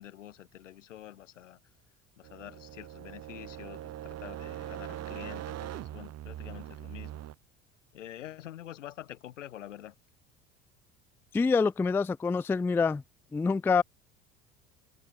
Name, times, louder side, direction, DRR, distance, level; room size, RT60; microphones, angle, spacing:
voice 1, 0.0-1.6 2.2-7.2 7.9-9.9, left 12 dB, 75° left, 1.5 m, -46 dB
sound 1, 2.2-7.3, right 13 dB, 45° right, 2.1 m, -41 dB
voice 2, 11.3-13.0 13.3-13.8, left 4 dB, 5° left, 0.3 m, -26 dB
figure-of-eight pair, 65°, 37 cm